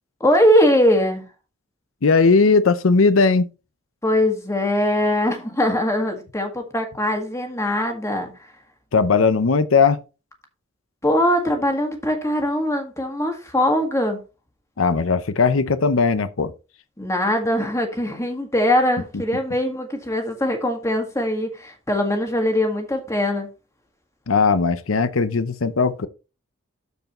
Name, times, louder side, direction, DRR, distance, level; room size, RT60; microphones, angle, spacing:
voice 1, 0.2-1.2 4.0-8.3 11.0-14.2 17.0-23.5, left 1 dB, 15° left, 1.7 m, -21 dB
voice 2, 2.0-3.5 8.9-10.0 14.8-16.5 24.3-26.1, left 4 dB, 85° left, 0.7 m, -18 dB
13.0 x 4.7 x 3.1 m
head